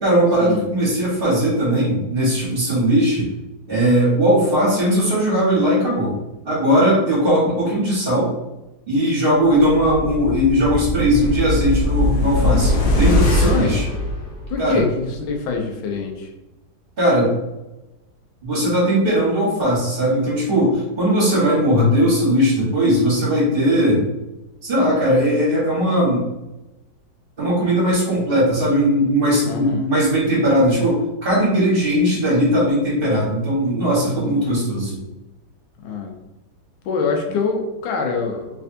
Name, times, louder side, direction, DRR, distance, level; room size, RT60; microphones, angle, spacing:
voice 1, 0.0-3.3 3.7-6.1 6.4-8.3 8.9-13.8 14.6-14.8 17.0-17.3 18.4-24.0 24.6-26.3 27.4-35.0, equal, 35° right, -6 dB, 1.3 m, -18 dB
sound 1, 9.6-14.8 15.1-15.2, left 2 dB, 65° left, 0.9 m, -21 dB
voice 2, 13.4-13.7 14.5-16.3 29.5-29.8 34.2-34.4 35.8-36.1 36.9-38.5, left 4 dB, 90° left, 2 dB, 1.5 m, -25 dB
3.4 x 3.2 x 2.6 m, 1.0 s
omnidirectional pair, 2.1 m